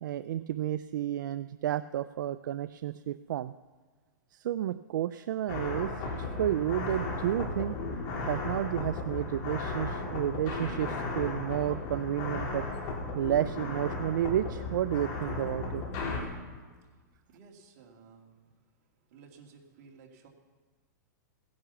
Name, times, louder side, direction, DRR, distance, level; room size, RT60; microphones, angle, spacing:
voice 1, 0.0-3.5 4.3-5.9 6.2-7.8 8.2-12.7 13.1-15.8, right 12 dB, 70° right, 13 dB, 0.4 m, -31 dB
sound 1, 5.5-16.2, left 3 dB, 45° left, 3.7 m, -35 dB
voice 2, 17.3-18.3 19.1-20.3, right 5 dB, 45° right, 0 dB, 2.7 m, -55 dB
16.0 x 10.5 x 7.0 m, 1.4 s
hypercardioid pair, 150°, 10 cm